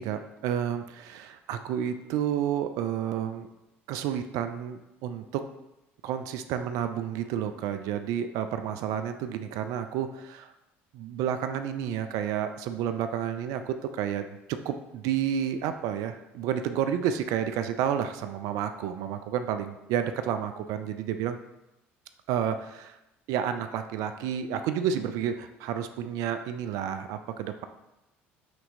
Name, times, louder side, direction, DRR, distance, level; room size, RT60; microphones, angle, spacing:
voice 1, 0.0-3.5 3.9-5.4 6.0-10.5 10.9-21.4 22.3-22.9 23.3-27.6, right 9 dB, 65° right, 8 dB, 0.3 m, -30 dB
6.0 x 2.8 x 2.6 m, 0.92 s
hypercardioid pair, 65°, 6 cm